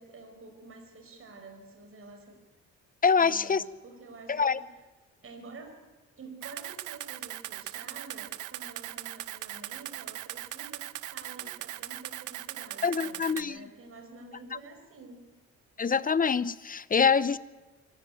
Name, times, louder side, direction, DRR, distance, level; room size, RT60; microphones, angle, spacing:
voice 1, 0.0-2.4 3.2-4.6 5.2-5.7 6.2-15.2, right 3 dB, 45° right, 4 dB, 4.9 m, -49 dB
voice 2, 3.0-3.6 4.3-4.6 12.8-13.7 15.8-17.4, left 6 dB, 30° left, 18 dB, 0.8 m, -25 dB
Camera, 6.4-13.4, right 15 dB, 80° right, 0.8 m, -39 dB
23.5 x 14.0 x 9.2 m, 1.2 s
cardioid pair, 90°, 30 cm